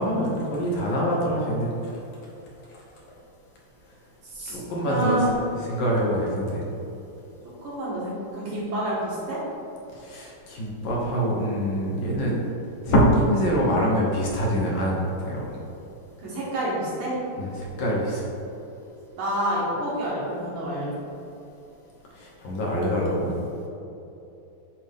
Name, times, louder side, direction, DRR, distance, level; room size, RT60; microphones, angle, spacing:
voice 1, 0.0-1.7 4.5-5.2 5.6-6.6 10.0-12.4 12.8-15.0 15.2-15.6 17.4-18.3 22.1-23.4, equal, 65° left, -3 dB, 1.7 m, -24 dB
voice 2, 4.2-4.6 4.9-5.3 7.6-9.4 16.2-17.2 19.2-20.9, right 1 dB, 75° right, -7 dB, 2.5 m, -28 dB
8.0 x 3.6 x 3.5 m, 2.9 s
omnidirectional pair, 2.4 m